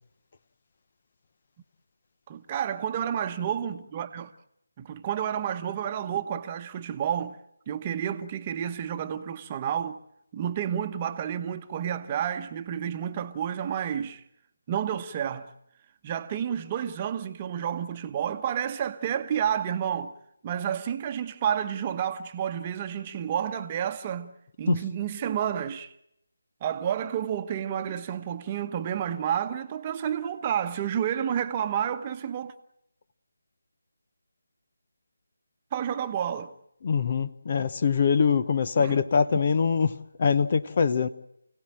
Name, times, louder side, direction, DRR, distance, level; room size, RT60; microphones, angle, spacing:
voice 1, 2.3-4.3 4.8-7.4 7.7-10.0 10.3-14.2 14.7-15.5 16.0-20.1 20.4-25.9 26.6-32.5 35.7-36.5 38.8-39.0, right 9 dB, 25° right, 1.1 m, -30 dB
voice 2, 36.8-41.1, left 6 dB, 40° left, 0.9 m, -23 dB
29.0 x 17.5 x 7.6 m
figure-of-eight pair, 160°, 0 cm